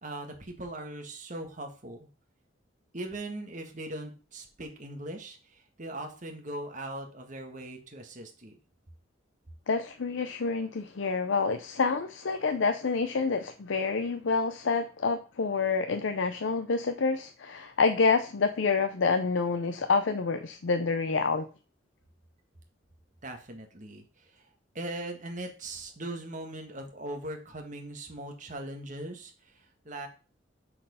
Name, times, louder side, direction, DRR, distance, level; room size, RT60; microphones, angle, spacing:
voice 1, 0.0-2.1 2.9-8.6 23.2-24.5 24.7-30.1, right 1 dB, 40° right, 1.7 m, -40 dB
voice 2, 9.7-21.5, left 4 dB, 80° left, 0.6 m, -28 dB
7.5 x 4.4 x 5.5 m
head